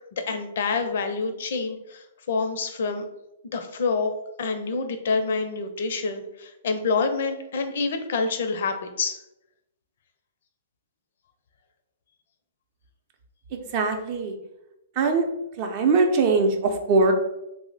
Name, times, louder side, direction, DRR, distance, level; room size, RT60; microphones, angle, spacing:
voice 1, 0.1-3.0 3.5-4.1 4.4-9.2, left 4 dB, 65° left, 7 dB, 0.5 m, -27 dB
voice 2, 13.7-14.4 15.0-15.2 15.6-17.1, right 3 dB, 40° right, 4 dB, 0.5 m, -21 dB
2.7 x 2.0 x 3.9 m, 0.88 s
hypercardioid pair, 140°, 0 cm